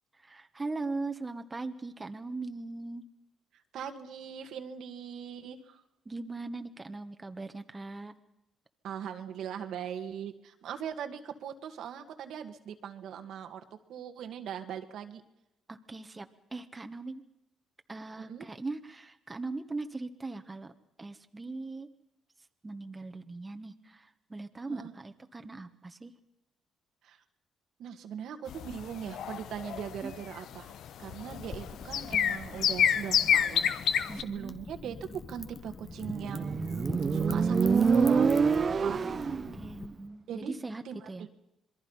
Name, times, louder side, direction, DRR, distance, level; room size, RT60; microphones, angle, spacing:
voice 1, 0.1-3.0 6.0-8.1 15.7-17.2 17.9-20.7 21.0-21.9 22.6-26.1 30.0-30.1 34.1-34.5 38.9-41.3, right 3 dB, 20° right, 7 dB, 1.5 m, -40 dB
voice 2, 3.7-5.8 8.8-13.6 13.9-15.2 18.2-18.5 24.7-24.9 27.0-27.2 27.8-30.7 31.0-36.6 37.1-38.4 38.8-39.0 40.3-40.6 40.9-41.3, right 8 dB, 75° right, 6 dB, 1.9 m, -40 dB
sound 1, 28.5-34.2, left 9 dB, 75° left, 1.1 m, -28 dB
Wind / Fire, 31.3-39.9, left 5 dB, 40° left, 1.6 m, -44 dB
Motorcycle, 36.1-39.6, right 5 dB, 40° right, 0.8 m, -26 dB
26.5 x 22.0 x 5.7 m, 0.85 s
cardioid pair, 90°, 0 cm